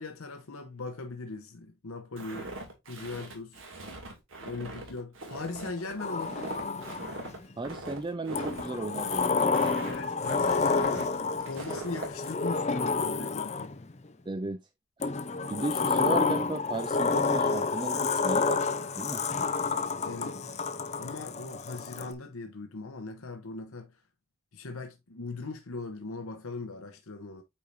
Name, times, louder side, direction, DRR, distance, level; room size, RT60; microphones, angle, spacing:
voice 1, 0.0-2.5 2.9-3.6 4.4-6.6 9.8-13.7 20.0-20.6 21.0-24.0 24.5-27.4, left 3 dB, 70° left, 0.9 m, -40 dB
Walk footsteps, 2.2-12.1, right 2 dB, 60° right, 2.4 m, -41 dB
Sliding door, 6.0-7.4 8.3-13.9 15.0-22.1, left 4 dB, 30° left, 0.6 m, -29 dB
voice 2, 7.6-9.6 14.3-14.6 15.0-15.1 15.4-19.2, right 2 dB, 20° right, 0.3 m, -35 dB
8.5 x 4.6 x 2.6 m
head